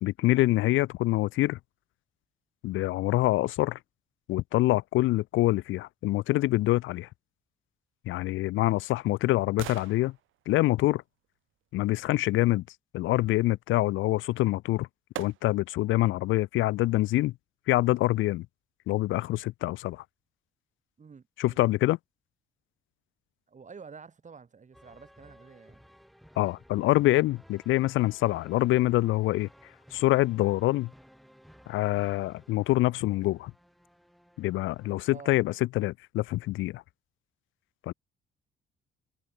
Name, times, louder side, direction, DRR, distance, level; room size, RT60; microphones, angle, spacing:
voice 1, 0.0-1.6 2.6-3.8 4.3-7.1 8.1-10.1 10.5-11.0 11.7-12.6 12.9-14.9 15.2-17.3 17.7-18.5 18.9-20.0 21.4-22.0 26.4-29.5 29.9-30.9 31.7-33.5 34.4-36.8 37.9-38.0, left 17 dB, 80° left, 0.4 m, -25 dB
sound 1, 8.0-12.1 14.2-14.3 15.1-15.8 16.3-16.4, right 14 dB, 80° right, 1.2 m, -46 dB
voice 2, 21.0-21.6 23.5-25.8 35.1-35.4, right 5 dB, 40° right, 6.3 m, -49 dB
sound 2, 24.7-35.3, equal, ahead, 6.9 m, -57 dB
cardioid pair, 90°, 20 cm